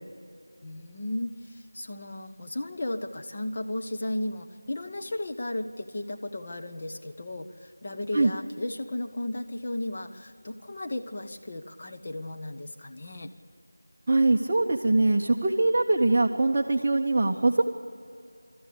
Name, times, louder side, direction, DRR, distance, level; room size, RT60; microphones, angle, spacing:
voice 1, 0.6-13.3, left 1 dB, 30° left, 4 dB, 1.1 m, -35 dB
voice 2, 14.1-17.6, right 2 dB, 20° right, -1 dB, 0.8 m, -22 dB
28.5 x 13.5 x 8.8 m, 2.6 s
figure-of-eight pair, 170°, 0 cm